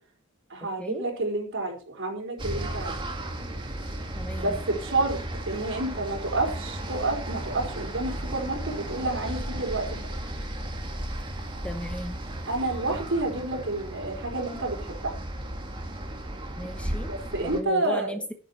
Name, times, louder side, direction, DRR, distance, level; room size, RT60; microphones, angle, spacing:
voice 1, 0.5-2.9 4.4-5.2 5.5-10.1 12.5-15.1 17.1-18.2, right 2 dB, 65° right, 1 dB, 4.7 m, -29 dB
sound 1, 2.4-17.6, right 1 dB, 25° right, 2.3 m, -35 dB
voice 2, 4.2-4.5 11.6-12.2 16.6-17.1 17.5-18.2, equal, 5° left, 8 dB, 1.0 m, -35 dB
10.5 x 10.0 x 4.5 m, 0.37 s
head